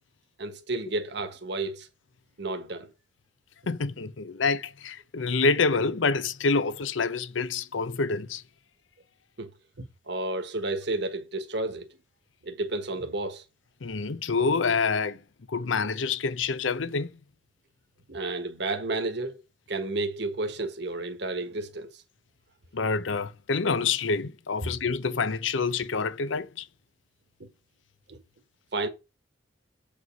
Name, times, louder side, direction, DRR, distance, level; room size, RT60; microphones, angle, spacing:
voice 1, 0.4-1.9 2.4-2.9 9.4-9.5 9.8-11.9 12.4-13.4 18.1-19.4 19.7-21.9 24.6-24.7 28.1-28.2 28.7-28.9, right 2 dB, 60° right, 1.5 m, -31 dB
voice 2, 3.7-8.4 13.8-15.2 15.5-17.1 22.7-26.7, left 4 dB, 90° left, 0.7 m, -27 dB
7.9 x 5.4 x 5.4 m
head